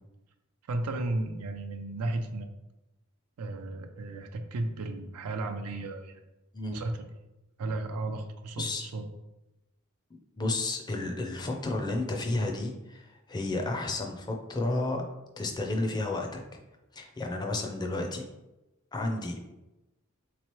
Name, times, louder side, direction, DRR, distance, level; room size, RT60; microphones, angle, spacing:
voice 1, 0.7-2.5 3.4-6.2 6.7-7.0 7.6-9.1, right 2 dB, 90° right, 6 dB, 0.4 m, -34 dB
voice 2, 8.6-8.9 10.4-15.0 15.4-16.4 16.9-18.2 18.9-19.3, left 2 dB, 20° left, 2 dB, 0.4 m, -31 dB
3.6 x 3.0 x 3.0 m, 1.0 s
head